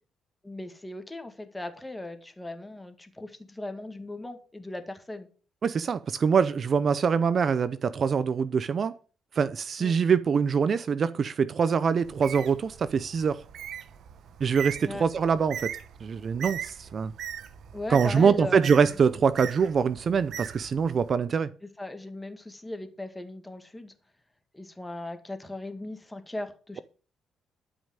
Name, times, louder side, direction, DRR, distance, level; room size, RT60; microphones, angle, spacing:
voice 1, 0.4-5.3 9.8-9.9 14.8-15.0 17.7-18.9 21.8-23.9 24.5-26.8, left 2 dB, 10° left, 2.0 m, -38 dB
voice 2, 5.6-8.9 9.3-13.4 14.4-15.7 16.0-17.1 17.9-21.5, right 6 dB, 50° right, 0.6 m, -24 dB
Bird, 12.0-21.1, right 9 dB, 70° right, 1.0 m, -40 dB
12.5 x 5.4 x 7.4 m
cardioid pair, 90°, 0 cm